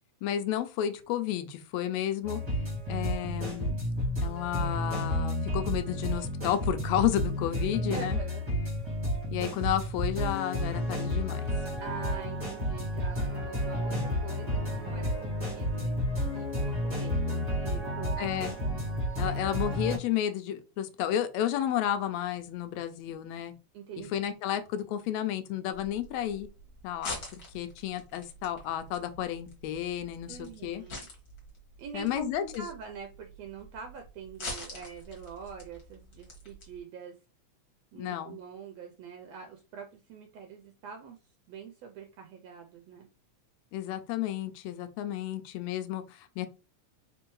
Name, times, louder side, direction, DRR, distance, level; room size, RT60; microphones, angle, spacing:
voice 1, 0.2-2.4 2.9-3.8 4.2-8.2 9.3-11.4 18.2-18.6 19.2-23.5 24.1-26.5 26.8-30.8 31.9-32.7 38.0-38.4 43.7-46.5, left 11 dB, 80° left, 1.7 m, -32 dB
sound 1, 2.2-20.0, equal, 20° right, 1.1 m, -31 dB
voice 2, 7.8-8.4 11.8-15.9 16.3-18.2 18.7-18.8 19.2-19.4 23.7-24.1 30.3-31.1 31.8-37.2 37.9-43.1, right 6 dB, 75° right, 1.6 m, -45 dB
sound 2, 25.7-36.8, left 1 dB, 40° left, 1.7 m, -45 dB
4.4 x 3.4 x 3.1 m
omnidirectional pair, 3.3 m